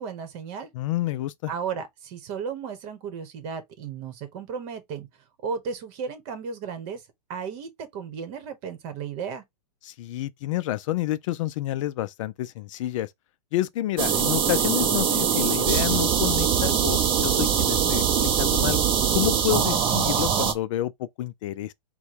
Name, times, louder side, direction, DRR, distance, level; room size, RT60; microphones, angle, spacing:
voice 1, 0.0-0.7 1.5-5.1 5.4-7.0 7.3-9.4, right 6 dB, 45° right, 1.2 m, -34 dB
voice 2, 0.7-1.5 9.8-13.1 13.5-18.8 19.1-21.7, left 14 dB, 50° left, 0.4 m, -29 dB
sound 1, 14.0-20.5, right 8 dB, 25° right, 0.8 m, -22 dB
4.4 x 2.2 x 4.3 m
hypercardioid pair, 130°, 21 cm